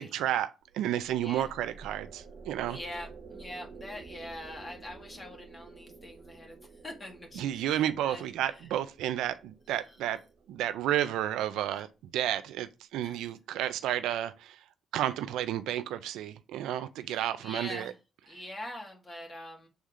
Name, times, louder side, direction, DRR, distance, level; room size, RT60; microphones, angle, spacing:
voice 1, 0.0-2.8 7.3-10.2 10.5-14.6 14.9-17.9, right 12 dB, 90° right, 0.5 m, -31 dB
sound 1, 0.7-12.1, right 4 dB, 65° right, 1.3 m, -51 dB
voice 2, 2.7-6.6 6.8-8.3 13.0-13.2 17.1-17.9 18.3-19.7, left 1 dB, 25° left, 2.1 m, -43 dB
7.1 x 3.6 x 3.8 m
cardioid pair, 90°, 0 cm